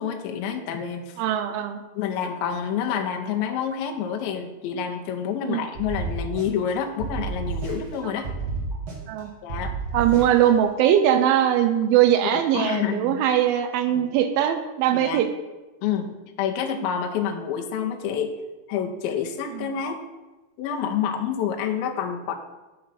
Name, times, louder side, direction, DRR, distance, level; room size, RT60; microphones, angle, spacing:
voice 1, 0.0-1.2 1.9-8.3 9.4-9.7 12.5-13.2 13.9-14.1 14.9-15.2 15.8-18.3 18.7-20.1 20.6-22.4, left 8 dB, 80° left, 4 dB, 2.3 m, -28 dB
voice 2, 1.2-1.8 5.5-5.6 8.0-8.1 9.1-9.3 9.9-15.3 19.5-19.8, right 10 dB, 80° right, 8 dB, 2.2 m, -21 dB
sound 1, 5.7-6.7 7.0-8.0 8.2-9.2 9.5-10.5, right 4 dB, 45° right, 1.3 m, -30 dB
9.4 x 3.8 x 5.6 m, 1.1 s
omnidirectional pair, 4.6 m